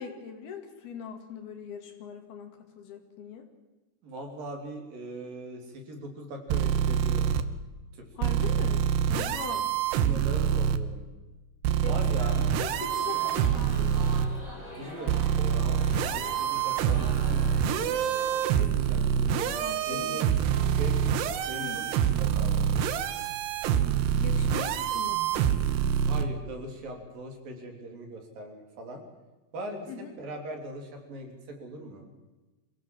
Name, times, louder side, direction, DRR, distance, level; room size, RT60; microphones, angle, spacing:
voice 1, 0.0-3.5 8.2-9.7 11.8-12.0 12.4-14.1 19.4-20.9 21.2-21.9 24.2-25.6 29.9-30.1, left 6 dB, 70° left, 5 dB, 4.2 m, -42 dB
voice 2, 4.0-7.3 7.9-8.1 9.1-9.4 10.0-11.0 11.8-12.4 14.7-17.9 18.4-20.3 20.7-21.2 21.5-22.9 26.0-29.0 29.5-29.9 30.2-32.1, right 1 dB, 60° right, 3 dB, 4.9 m, -40 dB
sound 1, 6.5-7.4 8.2-10.8 11.6-14.3 15.1-26.3, right 8 dB, 85° right, 3.2 m, -26 dB
sound 2, 12.1-18.4, equal, 10° left, 5.6 m, -43 dB
sound 3, 15.8-26.0, left 2 dB, 45° left, 9.2 m, -53 dB
25.5 x 16.5 x 7.7 m, 1.2 s
omnidirectional pair, 4.7 m